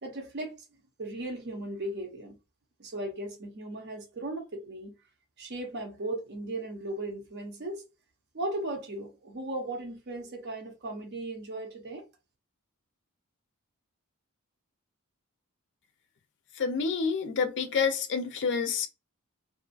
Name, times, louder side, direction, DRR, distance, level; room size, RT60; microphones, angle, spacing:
voice 1, 0.0-0.5 1.0-2.4 2.8-4.9 5.4-7.8 8.3-12.1, right 2 dB, 50° right, 0.7 m, -37 dB
voice 2, 16.6-18.9, left 5 dB, 55° left, 0.5 m, -28 dB
2.5 x 2.3 x 2.4 m
head